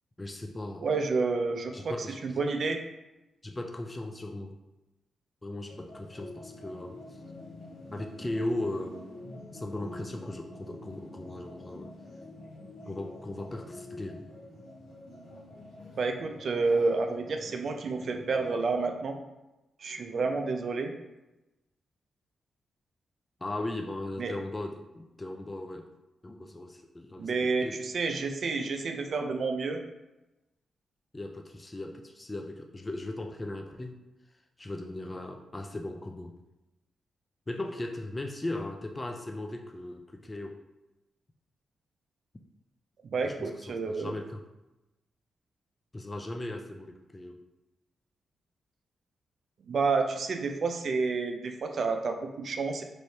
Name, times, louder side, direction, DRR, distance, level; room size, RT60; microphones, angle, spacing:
voice 1, 0.2-0.9 1.7-2.4 3.4-4.6 5.4-7.2 7.9-9.0 9.5-11.9 12.9-14.3 23.4-25.9 26.2-27.8 31.1-34.0 34.6-36.3 37.5-40.6 43.2-44.4 45.9-47.4, left 1 dB, 25° left, 3 dB, 0.4 m, -38 dB
voice 2, 0.8-1.9 2.2-2.8 16.0-19.2 19.8-20.9 24.2-24.3 27.2-29.8 43.1-44.1 49.7-52.8, right 4 dB, 65° right, 5 dB, 0.4 m, -29 dB
sound 1, 5.7-18.8, left 1 dB, 85° left, 0.9 m, -47 dB
3.1 x 3.0 x 2.7 m, 0.99 s
supercardioid pair, 45°, 0 cm